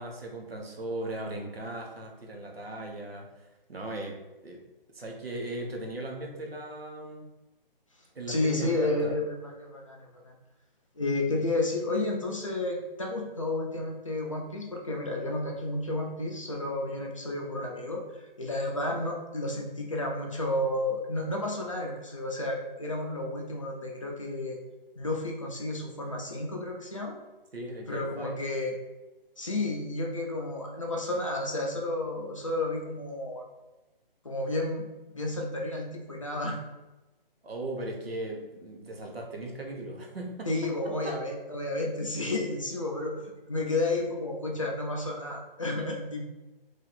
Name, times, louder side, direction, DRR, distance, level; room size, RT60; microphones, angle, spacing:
voice 1, 0.0-4.6 4.9-7.3 8.1-9.1 27.5-28.4 37.4-40.5 41.0-41.2, right 1 dB, 85° right, 1 dB, 1.1 m, -38 dB
voice 2, 8.3-10.3 11.0-24.6 25.0-27.2 27.9-28.7 29.4-33.4 34.2-36.7 40.5-46.2, left 2 dB, 35° left, 0 dB, 0.5 m, -31 dB
3.2 x 2.7 x 4.0 m, 1.1 s
hypercardioid pair, 170°, 29 cm